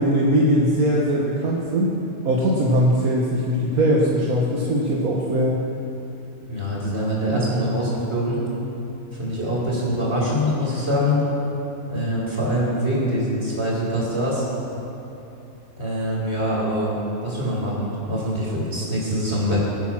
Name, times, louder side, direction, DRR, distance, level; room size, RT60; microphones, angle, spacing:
voice 1, 0.0-1.9 2.3-5.7 7.3-7.7, equal, 75° right, -3 dB, 1.9 m, -20 dB
voice 2, 6.5-8.4 9.1-11.2 11.9-14.4 15.8-16.9 17.2-19.6, equal, 45° right, -5 dB, 4.9 m, -24 dB
24.0 x 9.4 x 6.0 m, 2.9 s
omnidirectional pair, 1.5 m